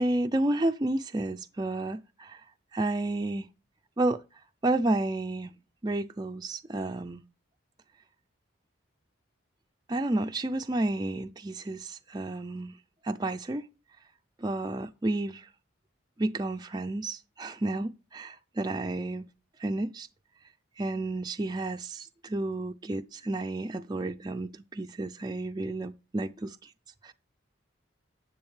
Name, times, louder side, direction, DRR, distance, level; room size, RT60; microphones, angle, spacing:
voice 1, 0.0-2.4 2.7-3.5 4.0-4.2 4.6-5.5 5.8-7.2 9.9-12.7 13.0-13.7 14.4-15.5 16.2-19.3 19.6-20.1 20.8-26.7 27.0-27.1, right 2 dB, 20° right, 0.4 m, -31 dB
10.5 x 7.9 x 3.2 m
head